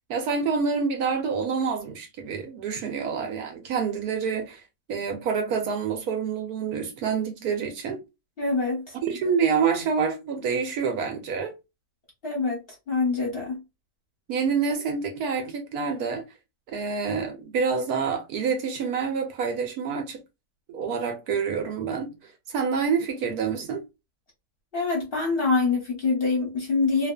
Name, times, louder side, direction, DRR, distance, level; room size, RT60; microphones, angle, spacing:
voice 1, 0.1-4.6 4.9-8.0 9.0-11.5 14.3-16.2 16.7-20.2 20.7-22.1 22.5-23.8, right 6 dB, 70° right, 1.0 m, -27 dB
voice 2, 8.4-8.9 12.2-13.6 24.7-27.1, left 4 dB, 45° left, 0.9 m, -25 dB
2.7 x 2.4 x 2.2 m
omnidirectional pair, 1.8 m